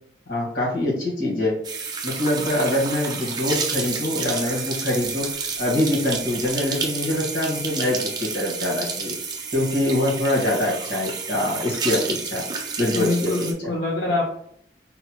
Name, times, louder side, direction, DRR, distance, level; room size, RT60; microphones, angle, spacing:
voice 1, 0.3-1.5 2.0-5.3 5.6-9.1 9.5-12.4 12.8-13.5, left 1 dB, 85° left, -3 dB, 1.5 m, -24 dB
sound 1, 1.6-13.5, right 5 dB, 25° right, 0.4 m, -30 dB
voice 2, 12.9-14.3, left 2 dB, 65° left, -1 dB, 0.5 m, -25 dB
3.9 x 2.1 x 2.9 m, 0.67 s
head